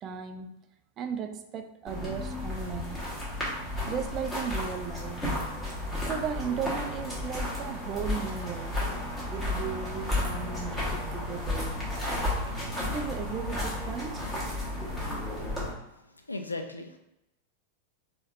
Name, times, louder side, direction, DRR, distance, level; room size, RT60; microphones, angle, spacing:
voice 1, 0.0-0.6 1.0-3.1 3.9-5.2 6.0-8.8 9.3-11.8 12.9-14.2, right 7 dB, 30° right, 7 dB, 0.3 m, -36 dB
sound 1, 1.9-15.7, left 1 dB, 10° left, 1.4 m, -33 dB
voice 2, 15.9-17.0, left 2 dB, 80° left, 5 dB, 0.4 m, -37 dB
3.9 x 3.0 x 2.5 m, 0.87 s
figure-of-eight pair, 90°, 0 cm